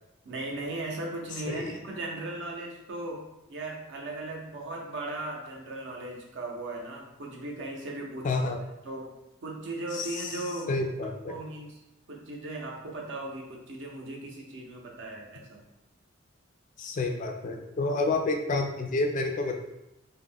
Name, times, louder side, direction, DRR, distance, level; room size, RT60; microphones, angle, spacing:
voice 1, 0.2-8.4 8.8-9.1 9.4-10.7 11.3-11.8 12.1-15.6, right 2 dB, 60° right, -1 dB, 0.6 m, -37 dB
voice 2, 1.4-1.8 8.2-8.6 9.9-10.4 10.7-11.3 16.8-19.5, left 3 dB, 40° left, 3 dB, 0.3 m, -29 dB
2.3 x 2.1 x 3.5 m, 0.94 s
head